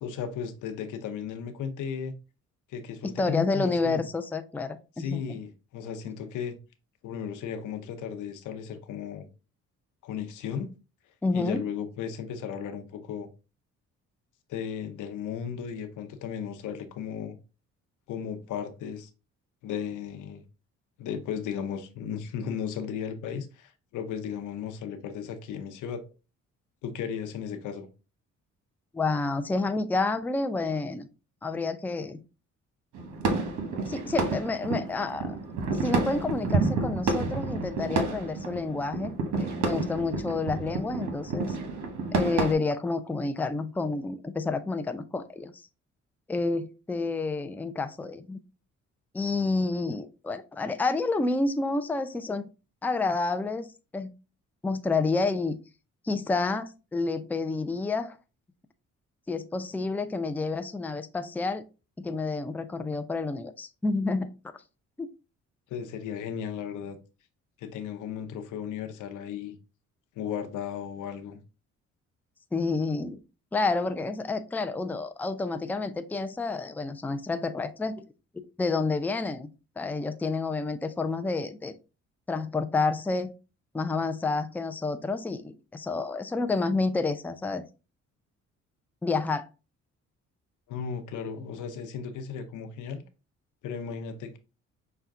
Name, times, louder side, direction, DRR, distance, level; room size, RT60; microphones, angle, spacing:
voice 1, 0.0-2.1 2.7-4.0 5.0-6.5 7.0-9.3 10.0-10.7 11.3-13.3 14.5-17.4 18.1-19.1 19.6-20.4 21.0-26.0 26.8-27.9 65.7-67.0 67.6-69.5 70.2-71.4 90.7-93.0 93.6-94.4, left 7 dB, 85° left, 0.8 m, -35 dB
voice 2, 3.0-5.2 11.2-11.6 28.9-31.1 31.4-32.2 33.9-35.4 35.8-41.6 42.1-45.5 46.3-48.4 49.1-52.5 52.8-53.7 53.9-54.1 54.6-55.6 56.0-58.2 59.3-61.6 62.0-64.3 65.0-65.1 72.5-73.2 73.5-78.0 78.6-79.5 79.8-81.7 82.3-83.3 83.7-87.6 89.0-89.5, left 3 dB, 5° left, 0.4 m, -29 dB
sound 1, 32.9-42.5, right 3 dB, 70° right, 1.0 m, -30 dB
5.6 x 2.3 x 3.6 m
cardioid pair, 90°, 30 cm